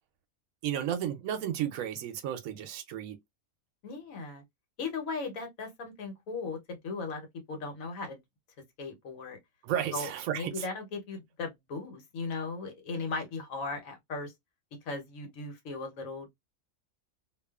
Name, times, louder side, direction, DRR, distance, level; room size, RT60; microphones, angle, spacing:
voice 1, 0.6-3.2 9.6-10.7, right 10 dB, 80° right, 1.0 m, -33 dB
voice 2, 3.8-4.4 4.8-8.2 8.8-9.4 9.9-10.1 10.3-14.3 14.8-16.3, left 4 dB, 85° left, 1.3 m, -37 dB
2.6 x 2.4 x 2.3 m
omnidirectional pair, 1.4 m